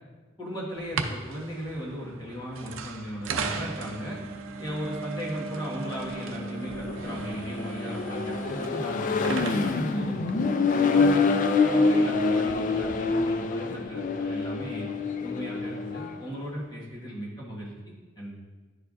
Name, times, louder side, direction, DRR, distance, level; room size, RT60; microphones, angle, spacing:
voice 1, 0.4-4.2 4.6-10.2 10.6-14.9 15.2-18.3, equal, 20° left, -6 dB, 1.5 m, -37 dB
sound 1, 0.8-11.1, right 4 dB, 80° right, 0.5 m, -37 dB
Accelerating revving vroom, 5.8-16.2, left 4 dB, 40° left, 0.3 m, -26 dB
10.0 x 4.5 x 2.5 m, 1.3 s
head